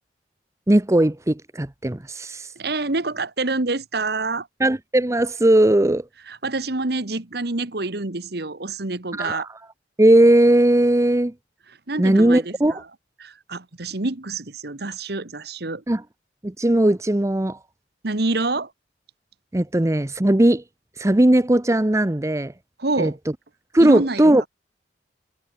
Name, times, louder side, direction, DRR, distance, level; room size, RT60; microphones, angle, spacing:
voice 1, 0.7-2.5 4.6-6.0 9.2-9.4 10.0-11.3 12.0-12.8 15.9-16.0 16.4-17.6 19.5-20.6 21.0-22.5 23.0-23.1 23.7-24.4, right 1 dB, 15° right, 0.7 m, -18 dB
voice 2, 2.5-4.5 6.3-9.5 11.9-12.8 13.2-15.8 18.0-18.7 22.8-23.2 23.8-24.5, right 2 dB, 60° right, 1.6 m, -27 dB
head